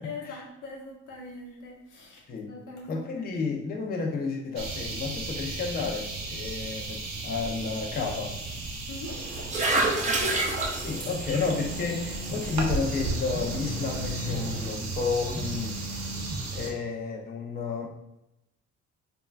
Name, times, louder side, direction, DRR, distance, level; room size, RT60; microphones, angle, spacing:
voice 1, 0.0-3.6 8.9-10.3, left 2 dB, 80° left, -1 dB, 0.8 m, -43 dB
voice 2, 2.9-8.4 10.8-16.0 16.5-17.9, left 4 dB, 30° left, 0 dB, 0.5 m, -31 dB
sound 1, 4.6-16.7, right 2 dB, 60° right, 0.7 m, -34 dB
sound 2, 9.1-14.7, right 2 dB, 25° right, 0.4 m, -31 dB
sound 3, 11.3-12.4 13.3-14.4 15.3-16.4, right 1 dB, ahead, 0.8 m, -38 dB
3.0 x 2.2 x 2.3 m, 0.85 s
cardioid pair, 90°, 30 cm